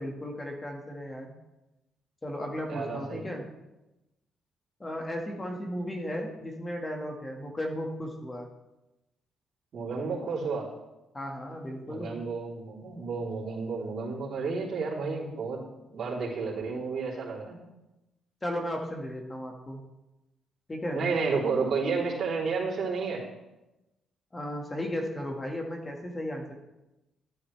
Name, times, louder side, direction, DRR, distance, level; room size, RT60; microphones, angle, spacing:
voice 1, 0.0-1.3 2.2-3.4 4.8-8.5 11.1-12.1 18.4-19.8 20.7-21.0 24.3-26.5, equal, 20° left, 1 dB, 1.7 m, -35 dB
voice 2, 2.7-3.2 9.7-10.7 11.8-15.6 15.9-17.5 20.9-23.2, right 4 dB, 60° right, -5 dB, 3.4 m, -31 dB
11.5 x 9.8 x 3.3 m, 0.98 s
cardioid pair, 90°, 0 cm